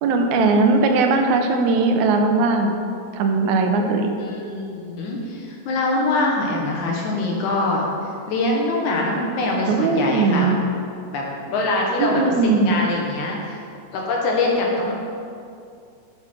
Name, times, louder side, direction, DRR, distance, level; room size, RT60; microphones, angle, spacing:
voice 1, 0.0-2.7 3.1-4.1 9.7-10.6 12.0-12.7, right 3 dB, 85° right, 5 dB, 2.1 m, -19 dB
voice 2, 4.2-7.9 8.3-10.5 11.1-13.6 13.9-14.9, left 2 dB, 85° left, -1 dB, 2.7 m, -23 dB
7.0 x 6.5 x 5.9 m, 2.5 s
omnidirectional pair, 3.3 m